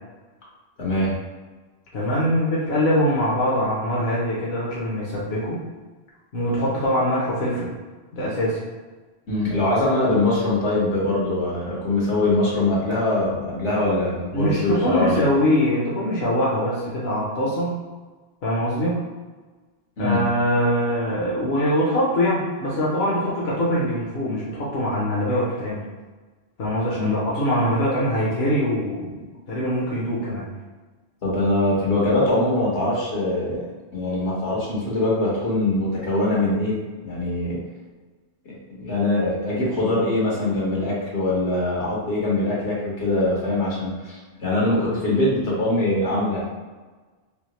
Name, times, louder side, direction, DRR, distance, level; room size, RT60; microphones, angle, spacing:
voice 1, 0.8-1.2 9.3-15.3 20.0-20.2 26.9-27.1 31.2-33.7 33.9-36.8 37.0-37.6 38.4-46.5, left 2 dB, 80° left, -6 dB, 1.5 m, -22 dB
voice 2, 1.9-5.6 6.3-7.7 8.1-8.6 14.3-17.8 18.4-19.0 20.0-25.8 26.6-30.5, equal, 65° left, -6 dB, 1.0 m, -23 dB
3.5 x 2.8 x 3.0 m, 1.3 s
omnidirectional pair, 1.2 m